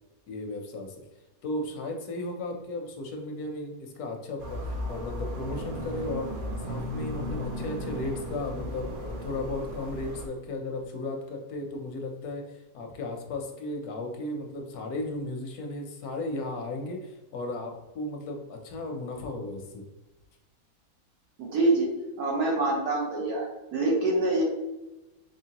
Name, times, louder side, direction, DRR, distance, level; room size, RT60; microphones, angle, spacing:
voice 1, 0.3-1.0 1.4-6.3 6.6-19.9, left 2 dB, 80° left, 3 dB, 1.2 m, -35 dB
sound 1, 4.4-10.3, equal, 65° right, 0.5 m, -35 dB
voice 2, 21.4-21.9 22.2-23.5 23.7-24.4, right 2 dB, 85° right, -2 dB, 1.5 m, -25 dB
3.7 x 3.1 x 2.8 m, 1.1 s
omnidirectional pair, 1.5 m